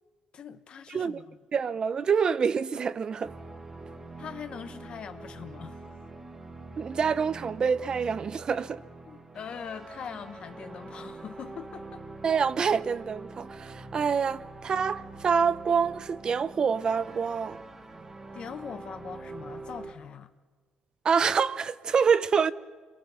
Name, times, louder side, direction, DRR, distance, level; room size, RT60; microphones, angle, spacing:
voice 1, 0.3-1.4 4.2-5.8 9.0-12.1 18.3-20.3, left 7 dB, 40° left, 1.1 m, -42 dB
voice 2, 1.5-3.3 6.8-8.8 12.2-17.6 21.0-22.5, right 6 dB, 30° right, 0.7 m, -26 dB
sound 1, 3.2-19.9, right 3 dB, 15° right, 1.5 m, -44 dB
29.5 x 23.0 x 5.7 m
cardioid pair, 165°, 3 cm